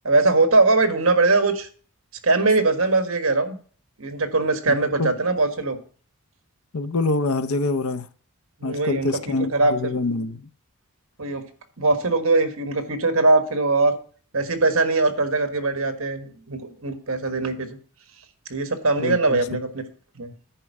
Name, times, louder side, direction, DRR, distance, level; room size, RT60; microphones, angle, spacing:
voice 1, 0.0-1.7 2.2-3.6 4.0-5.8 8.6-9.1 9.5-9.7 11.2-11.4 11.8-13.9 14.3-17.7 18.5-19.8 20.1-20.3, right 3 dB, 65° right, 1.6 m, -21 dB
voice 2, 4.7-5.1 6.7-8.1 8.6-10.5 19.0-19.6, left 3 dB, 75° left, 0.7 m, -26 dB
10.0 x 4.5 x 7.2 m
head